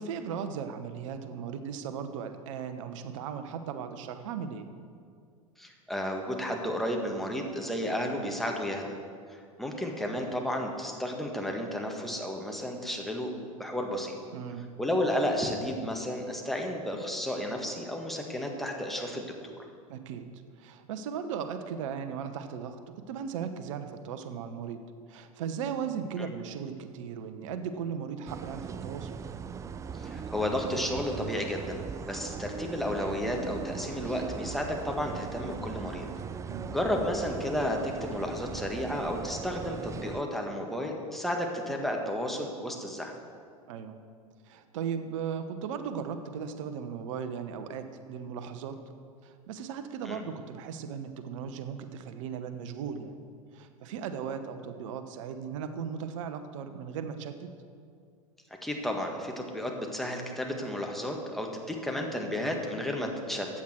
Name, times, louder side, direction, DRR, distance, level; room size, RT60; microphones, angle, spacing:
voice 1, 0.0-4.7 14.3-14.6 19.9-20.3 20.6-22.8 23.1-24.8 25.1-29.2 36.4-36.7 43.7-44.0 44.4-48.8 49.2-53.2 53.5-57.5, right 7 dB, 60° right, 9 dB, 1.0 m, -37 dB
voice 2, 5.6-8.9 9.3-13.3 13.6-14.1 14.8-19.5 26.2-26.3 30.0-36.0 36.7-43.1 50.0-50.2 58.6-63.5, left 1 dB, ahead, 1 dB, 1.8 m, -32 dB
sound 1, 28.3-40.2, right 6 dB, 15° right, 0.4 m, -39 dB
14.5 x 8.9 x 4.5 m, 2.3 s
figure-of-eight pair, 85°, 19 cm